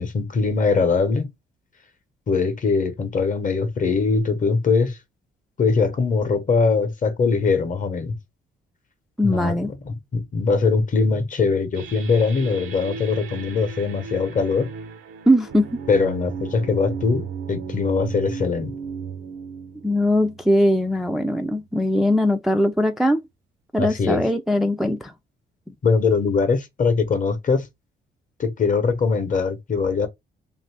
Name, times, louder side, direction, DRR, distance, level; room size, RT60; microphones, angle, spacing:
voice 1, 0.0-1.3 2.3-5.0 5.6-8.2 9.2-14.7 15.9-18.7 23.8-24.2 25.8-27.7 28.4-30.1, left 4 dB, 40° left, 0.8 m, -22 dB
voice 2, 9.2-9.7 15.3-15.7 19.8-23.2 23.7-25.1, equal, ahead, 0.3 m, -20 dB
sound 1, 11.7-21.1, right 6 dB, 85° right, 0.6 m, -35 dB
2.5 x 2.5 x 3.3 m
cardioid pair, 90°, 20 cm